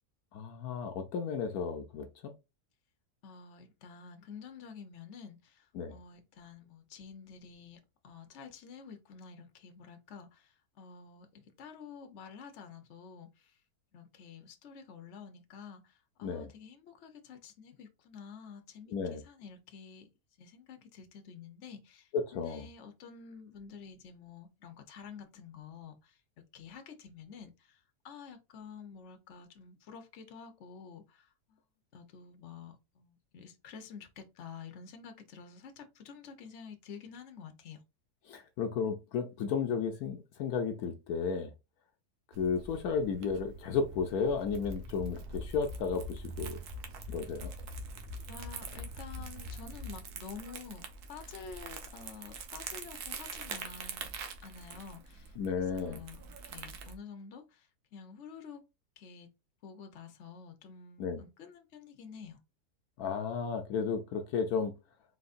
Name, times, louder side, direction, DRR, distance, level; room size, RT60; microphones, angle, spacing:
voice 1, 0.3-2.3 5.7-5.9 16.2-16.5 18.9-19.2 22.1-22.7 38.3-41.5 42.4-46.6 47.1-47.5 55.4-56.0 61.0-61.2 63.0-64.7, left 5 dB, 75° left, 1.1 m, -33 dB
voice 2, 3.2-13.6 13.9-20.1 20.4-26.2 26.5-31.6 31.9-37.8 48.3-54.1 54.4-58.6 59.0-59.3 59.6-62.4, left 6 dB, 55° left, 1.1 m, -50 dB
Crumpling crinkling, 42.3-56.9, right 5 dB, 75° right, 1.3 m, -46 dB
sound 1, 44.5-50.3, left 1 dB, 10° right, 2.1 m, -44 dB
4.2 x 4.0 x 2.5 m
omnidirectional pair, 1.7 m